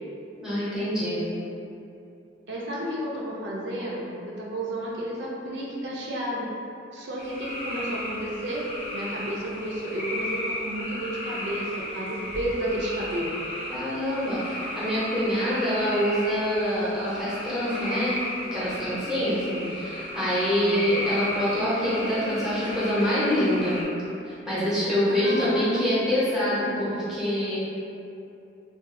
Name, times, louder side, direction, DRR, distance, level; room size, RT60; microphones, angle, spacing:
voice 1, 0.4-1.2 13.7-18.2 18.5-23.8 24.2-27.6, equal, 5° right, -10 dB, 0.7 m, -25 dB
voice 2, 2.5-6.5 6.9-8.7 8.9-13.4 19.4-19.7 25.1-26.1 26.4-26.9, equal, 70° right, -4 dB, 0.5 m, -32 dB
sound 1, 7.2-23.8, left 1 dB, 30° left, 0.6 m, -34 dB
3.6 x 2.3 x 2.5 m, 2.8 s
head